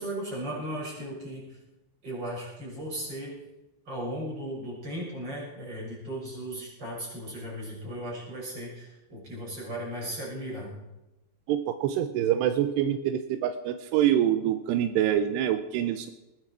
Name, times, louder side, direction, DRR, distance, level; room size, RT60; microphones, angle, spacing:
voice 1, 0.0-1.6 2.0-3.3 3.9-10.7, right 1 dB, 20° right, -4 dB, 6.9 m, -36 dB
voice 2, 11.5-16.1, right 10 dB, 85° right, 10 dB, 2.5 m, -26 dB
20.5 x 10.5 x 4.8 m, 0.99 s
omnidirectional pair, 5.5 m